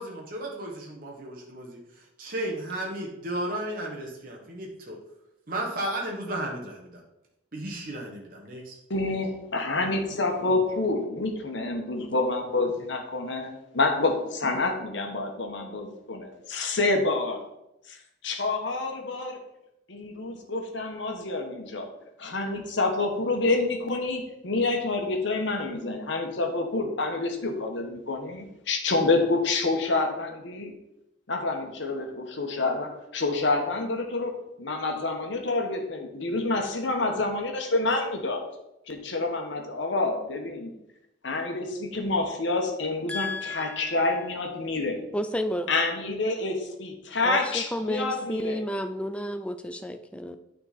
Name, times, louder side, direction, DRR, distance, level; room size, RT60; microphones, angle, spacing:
voice 1, 0.0-5.0 5.5-7.0 7.5-8.8, right 1 dB, 45° right, -1 dB, 1.1 m, -34 dB
voice 2, 8.9-17.5 17.9-18.0 18.2-19.4 19.9-21.9 22.2-30.7 31.3-38.4 38.9-40.7 41.2-45.0 45.7-48.6, left 3 dB, 65° left, 4 dB, 1.1 m, -28 dB
voice 3, 43.1-44.0 45.1-45.7 47.2-50.4, left 1 dB, 5° left, 9 dB, 0.3 m, -31 dB
8.8 x 3.8 x 4.1 m, 0.87 s
head